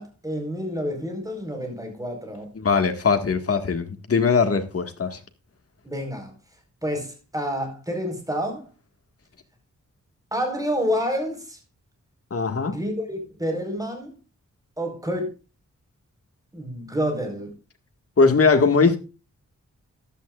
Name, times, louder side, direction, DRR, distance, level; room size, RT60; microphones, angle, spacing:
voice 1, 0.0-2.5 5.8-6.3 6.8-8.7 10.3-11.6 12.6-14.1 14.8-15.3 16.5-17.5, equal, 10° right, 4.7 m, -28 dB
voice 2, 2.6-5.2 12.3-12.8 18.2-19.0, left 4 dB, 50° left, 1.9 m, -20 dB
14.5 x 11.5 x 2.5 m
wide cardioid pair, 120°, 29 cm